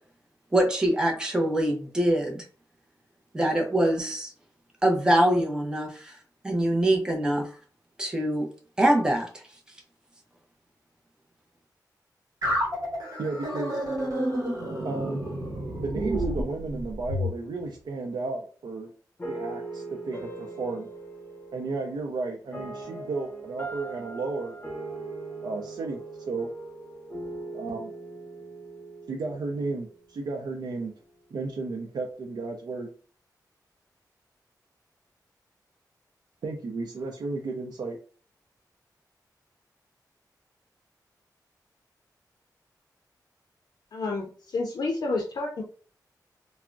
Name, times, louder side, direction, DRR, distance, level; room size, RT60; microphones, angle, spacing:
voice 1, 0.5-2.4 3.3-4.3 4.8-6.2 6.4-7.5 8.0-8.5 8.8-9.4, right 1 dB, 10° right, 0.6 m, -24 dB
sound 1, 12.4-17.3, equal, 55° right, 1.0 m, -30 dB
voice 2, 13.2-13.8 14.8-15.2 15.8-18.9 19.3-20.9 21.5-24.6 25.4-26.5 27.5-27.9 29.1-30.9 31.3-32.9 36.4-38.0, right 3 dB, 75° right, 0.4 m, -33 dB
sound 2, 19.2-30.3, right 2 dB, 25° left, 0.7 m, -40 dB
voice 3, 43.9-45.6, left 3 dB, 65° left, 0.5 m, -30 dB
3.4 x 2.0 x 2.4 m
wide cardioid pair, 150°, 7 cm